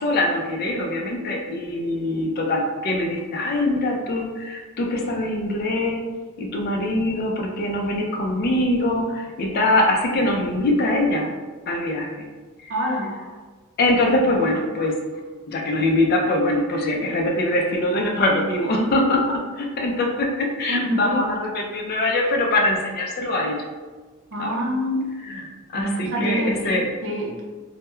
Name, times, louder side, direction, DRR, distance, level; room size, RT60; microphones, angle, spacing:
voice 1, 0.0-6.0 6.4-11.3 11.7-12.3 12.6-12.7 13.8-15.0 15.5-23.5 24.4-24.6 25.2-26.9, left 1 dB, 45° left, 1 dB, 0.3 m, -23 dB
voice 2, 12.7-13.2 18.7-19.0 20.7-21.2 24.3-25.1 25.7-27.4, equal, 60° right, -2 dB, 0.5 m, -26 dB
2.2 x 2.0 x 2.9 m, 1.4 s
head